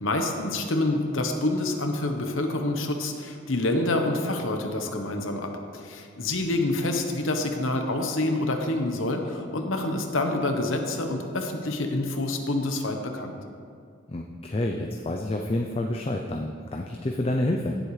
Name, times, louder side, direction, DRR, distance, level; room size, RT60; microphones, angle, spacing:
voice 1, 0.0-13.3, left 2 dB, 70° left, 4 dB, 1.0 m, -27 dB
voice 2, 14.1-17.8, left 1 dB, 25° left, 1 dB, 0.4 m, -28 dB
16.5 x 7.8 x 3.3 m, 2.3 s
head